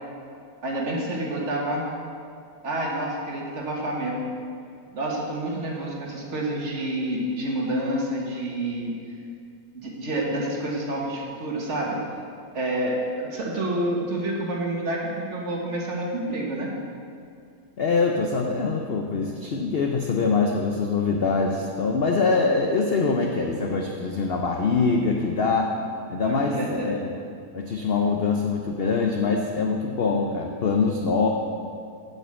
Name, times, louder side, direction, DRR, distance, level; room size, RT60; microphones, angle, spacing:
voice 1, 0.6-1.9 2.6-4.2 4.9-8.9 9.7-12.0 12.5-16.7 26.2-26.9, right 1 dB, 45° right, -2 dB, 1.4 m, -28 dB
voice 2, 17.8-25.7 26.1-27.1 27.5-31.3, left 4 dB, 75° left, 1 dB, 0.5 m, -24 dB
7.6 x 5.4 x 7.5 m, 2.3 s
omnidirectional pair, 1.8 m